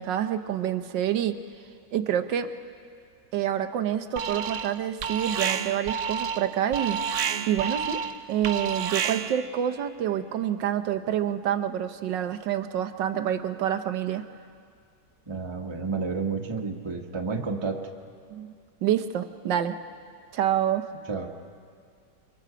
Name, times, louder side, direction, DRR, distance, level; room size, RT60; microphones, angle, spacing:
voice 1, 0.0-1.4 1.9-2.5 3.3-7.0 7.5-8.0 8.3-14.3 18.3-18.5 18.8-19.8 20.3-21.0, right 10 dB, 85° right, 8 dB, 1.6 m, -27 dB
Alarm, 4.2-4.8 5.0-9.5, right 7 dB, 60° right, 0.8 m, -30 dB
voice 2, 15.3-17.8 21.1-21.3, right 4 dB, 15° right, 2 dB, 1.1 m, -30 dB
28.5 x 23.5 x 5.0 m, 2.3 s
omnidirectional pair, 1.9 m